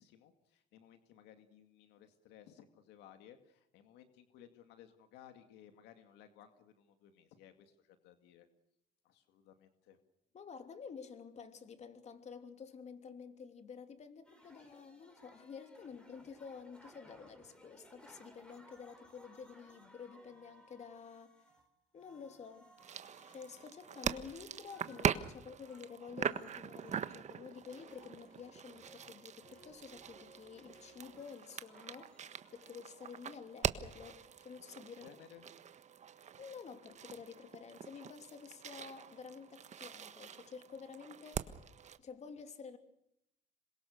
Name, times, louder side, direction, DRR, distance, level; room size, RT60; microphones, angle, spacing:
voice 1, 0.0-8.5 9.0-10.0 35.0-35.5, left 10 dB, 90° left, 8 dB, 2.3 m, -59 dB
voice 2, 10.3-21.4 21.9-22.7 23.3-32.2 32.5-35.0 36.4-41.6 42.0-42.8, left 6 dB, 40° left, 8 dB, 3.1 m, -50 dB
sound 1, 14.2-21.7 21.9-25.9 26.2-32.7, equal, 5° left, 5.1 m, -63 dB
sound 2, 22.8-42.0, right 8 dB, 45° right, 1.4 m, -42 dB
27.0 x 22.5 x 6.6 m, 0.79 s
cardioid pair, 110°, 17 cm